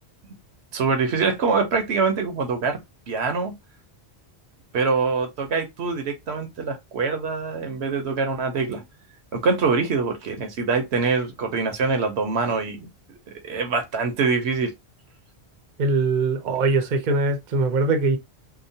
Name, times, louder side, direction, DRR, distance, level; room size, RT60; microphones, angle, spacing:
voice 1, 0.7-2.8 3.1-3.5 4.7-8.8 9.3-14.7, right 4 dB, 75° right, 1.0 m, -24 dB
voice 2, 15.8-18.2, right 3 dB, 55° right, 0.7 m, -22 dB
2.8 x 2.1 x 2.7 m
omnidirectional pair, 1.1 m